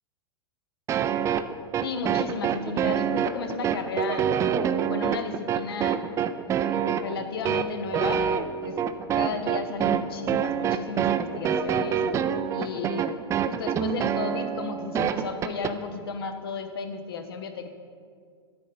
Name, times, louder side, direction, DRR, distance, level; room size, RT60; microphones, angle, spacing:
sound 1, 0.9-15.7, right 8 dB, 20° right, 0.4 m, -26 dB
voice 1, 1.8-4.3 4.8-6.0 6.4-8.2 8.6-8.8 9.1-12.0 12.5-17.7, left 5 dB, 60° left, 8 dB, 0.8 m, -34 dB
13.0 x 4.3 x 5.3 m, 2.1 s
figure-of-eight pair, 95°, 14 cm